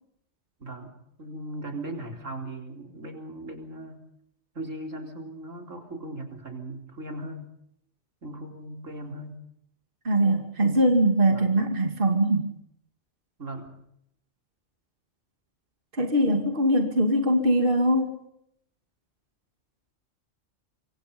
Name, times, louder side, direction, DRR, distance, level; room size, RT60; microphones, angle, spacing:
voice 1, 0.6-4.0 4.5-7.5 8.2-9.4 11.3-11.5 13.4-13.7, right 1 dB, 70° right, 3 dB, 4.4 m, -38 dB
voice 2, 10.0-12.5 15.9-18.1, right 1 dB, 40° right, 4 dB, 2.8 m, -22 dB
27.5 x 24.5 x 5.4 m, 0.74 s
omnidirectional pair, 1.4 m